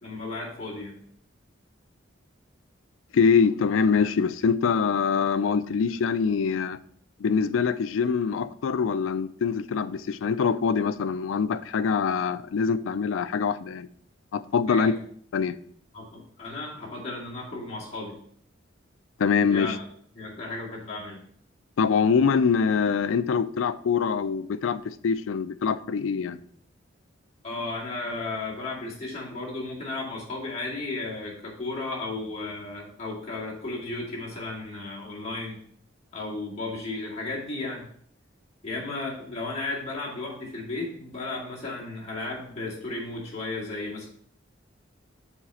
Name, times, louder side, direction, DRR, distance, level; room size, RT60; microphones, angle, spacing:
voice 1, 0.0-1.0 14.7-14.9 15.9-18.1 19.5-19.8 20.2-21.2 27.4-35.6 36.1-37.8 38.6-44.1, left 2 dB, 35° left, 2.3 m, -34 dB
voice 2, 3.1-6.8 7.2-13.9 14.3-14.9 15.3-15.6 19.2-19.7 21.8-26.4, left 6 dB, 85° left, 0.4 m, -24 dB
7.2 x 4.1 x 4.2 m
head